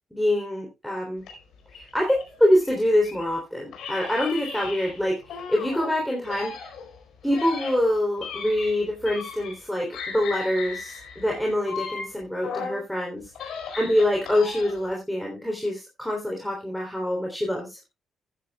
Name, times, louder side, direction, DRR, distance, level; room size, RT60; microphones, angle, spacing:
voice 1, 0.1-1.2 1.7-6.5 7.2-13.2 13.7-17.9, left 1 dB, 5° left, 0 dB, 3.3 m, -25 dB
sound 1, 1.2-3.3 3.7-5.9 6.2-9.7 9.9-12.8 13.2-14.9, left 5 dB, 80° left, 4.5 m, -37 dB
14.5 x 10.0 x 2.3 m, 0.24 s
cardioid pair, 90°, 0 cm